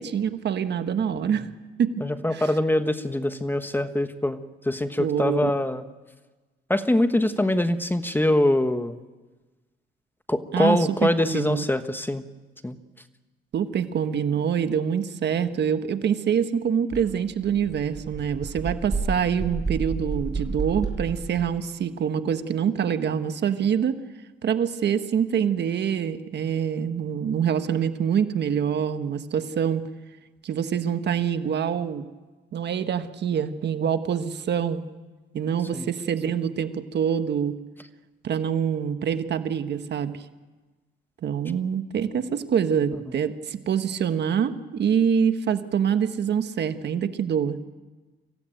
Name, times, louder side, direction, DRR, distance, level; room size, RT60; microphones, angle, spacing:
voice 1, 0.0-1.5 1.8-1.9 2.3-2.5 5.0-5.5 10.5-11.7 13.5-23.9 24.4-29.8 30.4-32.0 32.5-34.8 35.3-37.6 38.2-40.1 41.2-47.6, right 8 dB, 60° right, 9 dB, 1.4 m, -25 dB
voice 2, 2.0-4.4 4.7-5.8 6.7-9.0 10.3-12.2 12.6-12.8 35.7-35.9, left 1 dB, 10° left, 9 dB, 1.3 m, -23 dB
sound 1, 16.9-17.0 17.4-21.5, right 3 dB, 20° right, 6.7 m, -30 dB
25.0 x 15.5 x 9.1 m, 1.3 s
cardioid pair, 90°, 20 cm